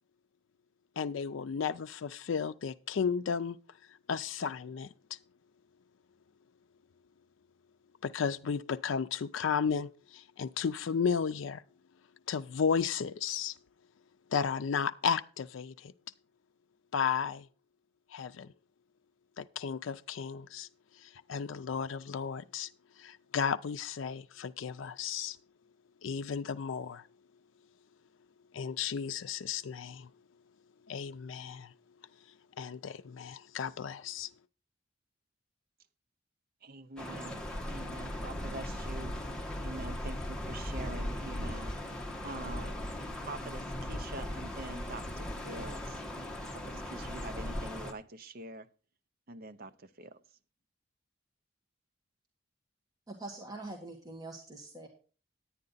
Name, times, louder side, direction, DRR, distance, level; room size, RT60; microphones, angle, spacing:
voice 1, 1.0-3.6 4.1-4.9 8.0-11.6 12.3-13.5 14.3-15.9 16.9-17.5 18.1-18.5 19.4-20.7 21.3-22.7 23.0-25.4 26.0-27.0 28.5-30.1 30.9-31.7 32.6-34.3, left 6 dB, 75° left, 0.4 m, -33 dB
voice 2, 36.6-41.7 42.2-42.8 43.2-46.0 46.5-48.7 49.3-50.2, right 2 dB, 50° right, 0.7 m, -45 dB
sound 1, 37.0-47.9, left 1 dB, 5° left, 1.2 m, -38 dB
voice 3, 53.1-54.9, right 2 dB, 20° right, 1.5 m, -44 dB
9.7 x 9.7 x 3.9 m
head